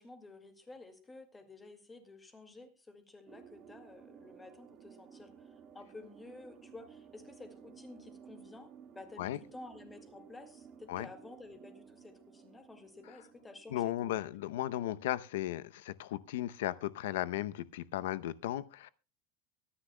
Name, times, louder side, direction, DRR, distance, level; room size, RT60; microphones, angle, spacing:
voice 1, 0.0-14.4, left 2 dB, 10° left, 2.0 m, -52 dB
sound 1, 3.3-14.4, right 7 dB, 30° right, 1.7 m, -56 dB
voice 2, 13.7-18.9, left 13 dB, 85° left, 0.7 m, -36 dB
23.5 x 10.0 x 2.2 m
supercardioid pair, 160°, 0 cm